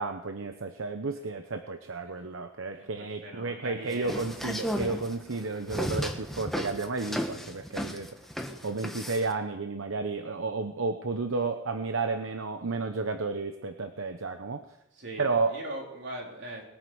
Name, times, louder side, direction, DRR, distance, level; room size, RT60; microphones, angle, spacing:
voice 1, 0.0-8.1 8.6-14.6 15.2-15.5, right 3 dB, 80° right, 7 dB, 0.9 m, -32 dB
voice 2, 2.7-4.3 14.9-16.6, right 1 dB, 60° right, -1 dB, 4.1 m, -41 dB
sound 1, 3.9-9.3, equal, ahead, 1.2 m, -34 dB
21.0 x 9.5 x 6.4 m, 0.87 s
head